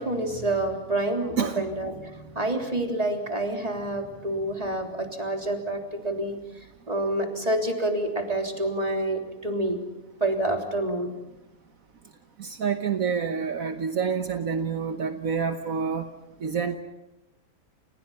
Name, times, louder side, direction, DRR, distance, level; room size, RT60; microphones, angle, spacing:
voice 1, 0.0-6.4 6.9-9.8 10.2-11.1, right 1 dB, 25° right, 3 dB, 3.6 m, -28 dB
voice 2, 12.4-16.1 16.4-16.8, right 6 dB, 70° right, 7 dB, 1.6 m, -27 dB
30.0 x 29.0 x 5.7 m, 0.92 s
omnidirectional pair, 1.5 m